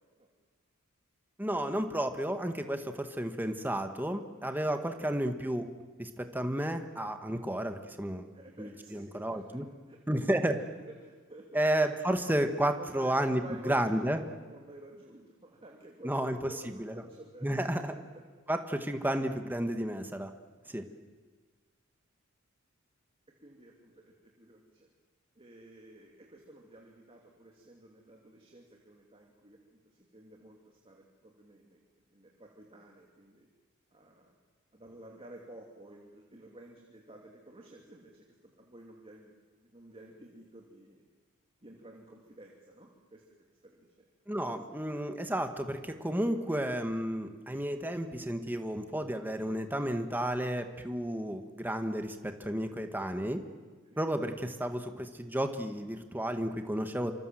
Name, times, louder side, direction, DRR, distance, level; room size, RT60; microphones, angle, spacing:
voice 1, 1.4-5.6 6.0-8.2 8.6-9.6 10.1-10.6 11.5-13.4 13.6-14.2 16.0-17.0 17.4-17.9 18.5-20.3 20.7-20.8 44.3-53.4 54.0-57.1, right 1 dB, 10° right, 6 dB, 1.6 m, -32 dB
voice 2, 8.3-9.6 9.9-10.2 10.5-10.6 11.0-11.6 12.7-17.6 18.1-18.2 20.7-21.0 23.4-24.9 25.4-33.5 33.9-34.3 34.7-38.2 38.6-41.0 41.6-44.0 53.8-54.0, right 1 dB, 25° right, 0 dB, 2.9 m, -52 dB
27.0 x 26.5 x 7.8 m, 1.4 s
head